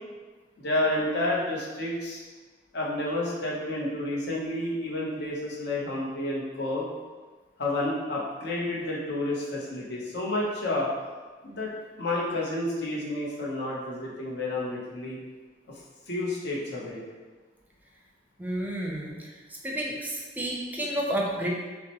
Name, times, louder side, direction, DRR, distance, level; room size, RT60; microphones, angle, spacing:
voice 1, 0.6-2.2 2.7-6.9 7.6-10.9 11.4-11.7 12.0-15.2 16.1-17.0, left 1 dB, 65° left, -4 dB, 0.9 m, -30 dB
voice 2, 18.4-19.2 19.6-21.5, right 1 dB, 10° right, -3 dB, 0.6 m, -30 dB
5.7 x 2.1 x 3.0 m, 1.4 s
head